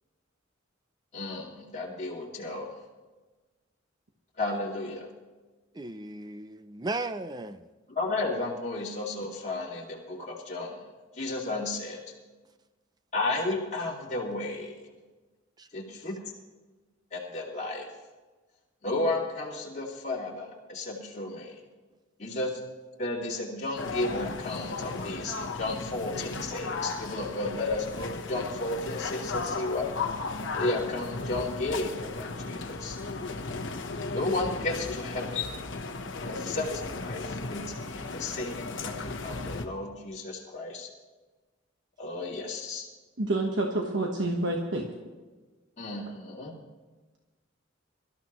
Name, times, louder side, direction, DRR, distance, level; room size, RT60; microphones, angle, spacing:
voice 1, 1.1-2.7 4.4-5.1 8.0-10.8 11.1-12.0 13.1-14.8 15.7-16.2 17.1-17.9 18.8-21.6 22.2-22.6 23.0-29.9 30.5-33.0 34.1-35.6 36.3-36.7 37.0-37.6 37.9-38.9 39.2-40.9 42.0-42.9 45.8-46.5, left 2 dB, 35° left, 2.4 m, -33 dB
voice 2, 5.7-7.7 15.6-15.7 22.3-22.4, right 2 dB, 20° right, 0.5 m, -36 dB
sound 1, 23.8-39.7, left 4 dB, 65° left, 1.0 m, -35 dB
voice 3, 43.2-44.8, right 2 dB, 60° right, 1.2 m, -28 dB
23.5 x 13.0 x 3.1 m
head